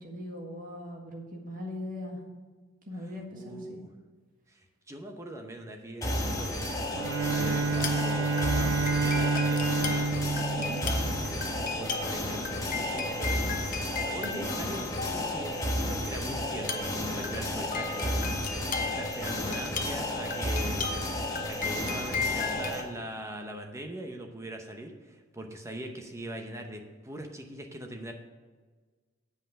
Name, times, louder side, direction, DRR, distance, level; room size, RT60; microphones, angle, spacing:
voice 1, 0.0-2.2 2.8-3.8 10.5-10.8 14.2-14.5, left 1 dB, 40° right, 0 dB, 1.7 m, -40 dB
voice 2, 3.1-3.9 4.5-6.6 6.9-10.1 10.6-13.6 14.0-14.9 15.1-20.9 21.4-28.1, right 1 dB, 15° right, 4 dB, 0.8 m, -41 dB
sound 1, 6.0-22.8, left 1 dB, 15° left, 1.2 m, -32 dB
sound 2, 6.4-6.6 7.7-8.1 8.4-15.6 16.6-22.7, left 5 dB, 40° left, 0.7 m, -37 dB
Bowed string instrument, 6.9-11.5, right 3 dB, 60° right, 0.5 m, -29 dB
8.1 x 5.6 x 6.4 m, 1.4 s
head